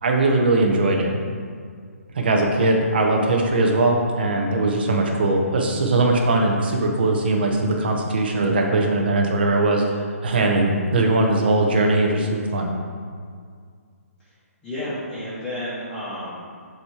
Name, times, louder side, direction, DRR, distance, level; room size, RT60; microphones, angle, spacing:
voice 1, 0.0-1.1 2.1-12.7, right 2 dB, 40° right, 1 dB, 0.8 m, -20 dB
voice 2, 14.6-16.4, left 1 dB, 5° left, -12 dB, 0.7 m, -31 dB
7.6 x 2.9 x 4.7 m, 2.1 s
hypercardioid pair, 175°, 8 cm